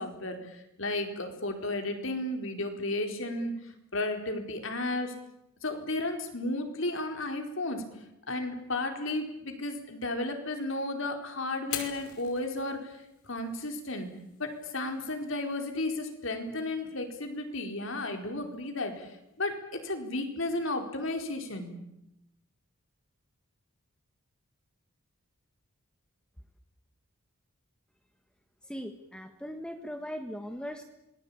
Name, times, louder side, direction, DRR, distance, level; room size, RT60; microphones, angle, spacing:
voice 1, 0.0-3.6 3.9-5.1 5.6-7.8 8.3-13.0 13.3-14.1 14.4-21.7, left 2 dB, 65° left, 5 dB, 4.4 m, -33 dB
Fire, 11.6-19.6, left 8 dB, 90° left, 5.2 m, -47 dB
voice 2, 28.6-30.8, equal, 5° left, 6 dB, 1.5 m, -39 dB
26.5 x 21.0 x 8.7 m, 0.87 s
head